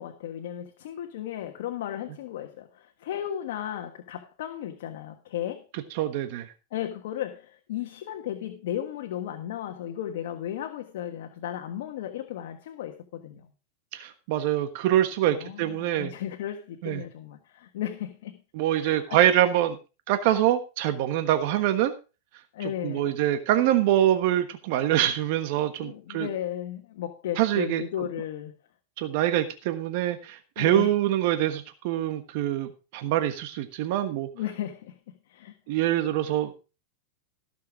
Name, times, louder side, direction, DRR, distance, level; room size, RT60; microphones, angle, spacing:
voice 1, 0.0-5.6 6.7-13.5 15.3-18.4 18.8-19.2 22.5-23.2 25.8-28.5 30.6-30.9 34.3-35.5, left 11 dB, 70° left, 1.4 m, -35 dB
voice 2, 6.0-6.5 13.9-16.1 16.8-17.0 18.5-19.8 20.1-21.9 22.6-26.3 27.4-27.8 29.0-34.3 35.7-36.6, right 12 dB, 55° right, 1.3 m, -25 dB
15.5 x 6.8 x 4.9 m
supercardioid pair, 145°, 0 cm